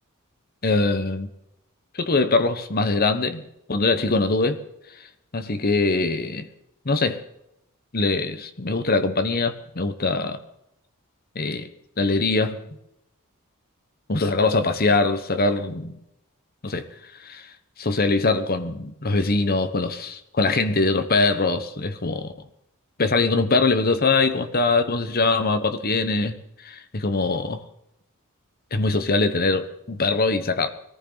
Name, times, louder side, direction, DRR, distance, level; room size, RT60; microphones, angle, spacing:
voice 1, 0.6-1.3 1.9-3.4 3.7-4.6 5.3-6.5 6.8-7.2 7.9-10.4 11.3-11.7 12.0-12.6 14.1-16.0 16.6-16.9 17.2-17.5 17.8-22.3 23.0-27.6 28.7-30.7, left 3 dB, 45° left, 1.1 m, -22 dB
21.0 x 14.5 x 4.0 m
head